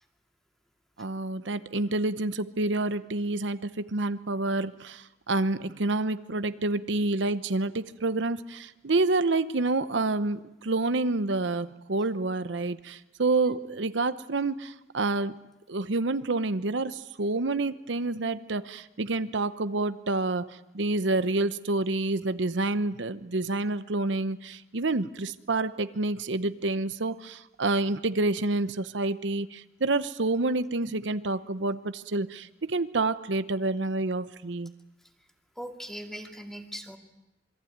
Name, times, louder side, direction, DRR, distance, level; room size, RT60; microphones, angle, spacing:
voice 1, 1.0-15.3 15.7-34.7, right 2 dB, 80° right, 12 dB, 0.9 m, -28 dB
voice 2, 35.6-37.0, equal, ahead, 4 dB, 2.4 m, -40 dB
27.0 x 22.5 x 9.4 m, 1.0 s
head